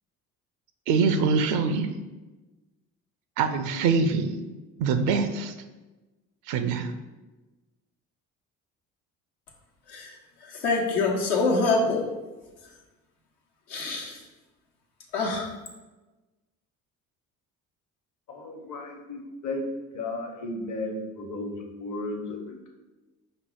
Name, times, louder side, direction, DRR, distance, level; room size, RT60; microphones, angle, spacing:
voice 1, 0.9-1.9 3.4-4.3 4.8-5.5 6.5-6.9, right 5 dB, 75° right, 8 dB, 0.5 m, -24 dB
voice 2, 9.9-12.2 13.7-14.2 15.1-15.5, left 3 dB, 70° left, 0 dB, 1.0 m, -26 dB
voice 3, 18.3-19.6 19.9-22.7, left 2 dB, 45° left, 2 dB, 1.1 m, -34 dB
5.1 x 2.1 x 4.5 m, 1.2 s
hypercardioid pair, 55°, 41 cm